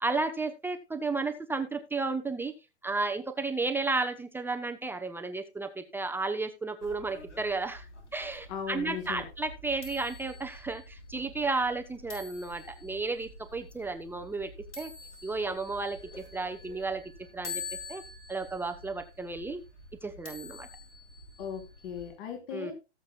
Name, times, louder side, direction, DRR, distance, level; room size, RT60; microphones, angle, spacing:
voice 1, 0.0-2.5 2.8-7.8 8.1-14.5 14.8-14.9 15.2-17.0 17.3-17.6 17.9-18.0 18.3-19.6 20.0-20.7 22.5-22.7, right 3 dB, 5° right, 6 dB, 0.9 m, -33 dB
sound 1, 6.8-22.1, left 3 dB, 90° left, 6.9 m, -46 dB
voice 2, 8.5-9.3 21.4-22.7, left 8 dB, 45° left, 3 dB, 4.4 m, -37 dB
18.5 x 7.5 x 2.4 m, 0.27 s
hypercardioid pair, 125°, 34 cm